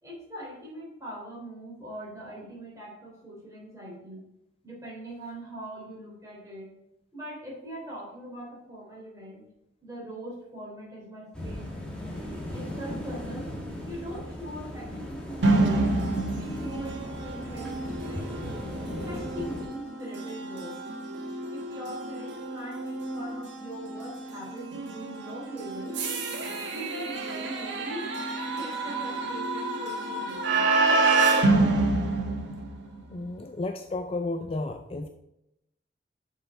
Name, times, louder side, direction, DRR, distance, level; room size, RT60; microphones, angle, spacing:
voice 1, 0.0-4.2 4.6-6.7 7.1-9.4 9.8-11.8 12.5-13.5 13.9-15.9 16.4-18.6 19.0-20.9 21.5-26.0 26.4-28.1 28.4-30.6, right 1 dB, 15° right, -5 dB, 3.5 m, -41 dB
sound 1, 11.3-19.7, left 1 dB, 5° left, 1.6 m, -37 dB
sound 2, 15.4-33.1, right 3 dB, 85° right, 1.3 m, -28 dB
voice 2, 33.1-35.1, left 2 dB, 30° left, 6 dB, 0.4 m, -32 dB
6.9 x 5.6 x 5.2 m, 0.85 s
head